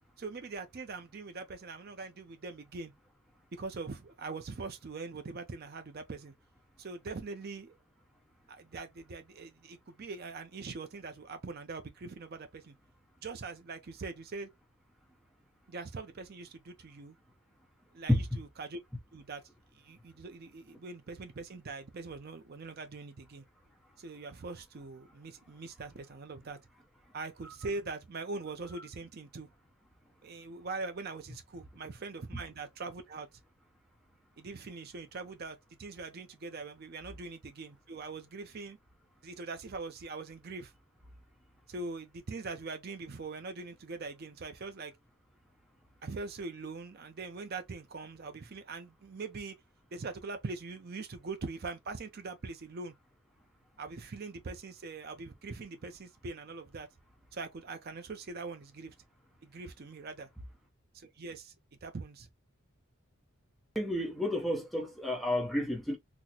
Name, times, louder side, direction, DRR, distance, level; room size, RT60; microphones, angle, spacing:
voice 1, 0.2-2.9 3.5-6.3 6.8-7.7 8.5-12.7 13.2-14.5 15.7-17.2 17.9-18.8 19.1-19.4 19.7-23.4 24.0-26.6 27.1-29.5 30.2-33.3 34.4-38.8 39.2-40.7 41.7-44.9 46.0-49.5 49.9-52.9 53.8-56.9 57.3-58.9 59.4-60.3 60.9-61.5 61.8-62.3, right 3 dB, 45° right, 0.5 m, -42 dB
voice 2, 63.7-66.0, left 1 dB, ahead, 0.7 m, -30 dB
4.0 x 2.1 x 2.8 m
head